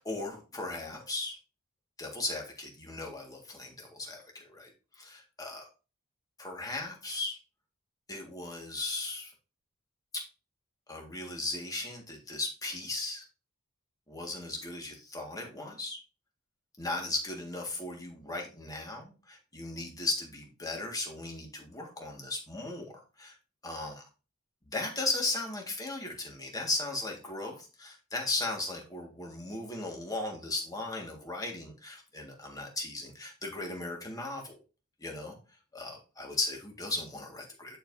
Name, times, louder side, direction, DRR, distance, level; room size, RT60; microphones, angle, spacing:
voice 1, 0.0-1.4 2.0-5.7 6.4-7.4 8.1-9.3 10.1-10.2 10.9-13.2 14.1-16.0 16.8-22.9 23.2-23.4 23.6-23.9 24.7-34.6 35.0-35.4 35.7-37.8, left 2 dB, 15° left, 0 dB, 1.8 m, -37 dB
9.8 x 4.8 x 2.7 m, 0.32 s
head